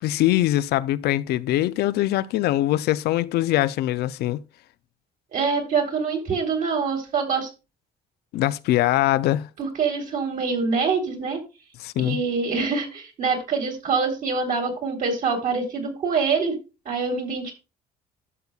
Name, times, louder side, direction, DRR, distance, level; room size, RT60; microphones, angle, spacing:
voice 1, 0.0-4.4 8.3-9.5 11.8-12.2, left 15 dB, 70° left, 0.4 m, -22 dB
voice 2, 5.3-7.5 9.6-11.4 12.0-16.6 16.8-17.5, right 5 dB, 55° right, 3.2 m, -25 dB
12.0 x 6.8 x 2.3 m
cardioid pair, 110°, 17 cm